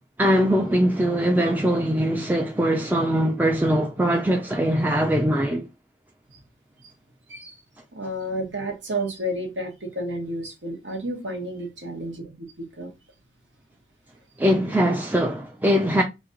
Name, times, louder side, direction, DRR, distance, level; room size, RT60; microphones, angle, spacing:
voice 1, 0.2-5.7 14.4-16.0, equal, 10° right, 0.3 m, -21 dB
voice 2, 7.9-12.9, right 1 dB, 85° right, 1.2 m, -31 dB
3.0 x 2.5 x 3.7 m
head